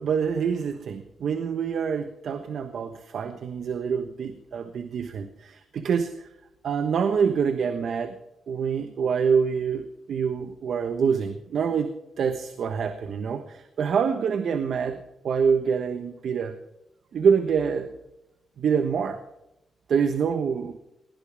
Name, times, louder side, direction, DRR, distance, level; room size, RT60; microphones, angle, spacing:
voice 1, 0.0-6.3 6.6-8.1 8.5-11.9 12.2-15.0 15.2-16.5 17.1-17.9 18.6-19.2 19.9-20.8, right 6 dB, 65° right, 8 dB, 1.2 m, -26 dB
20.0 x 17.0 x 3.5 m, 0.91 s
cardioid pair, 130°, 0 cm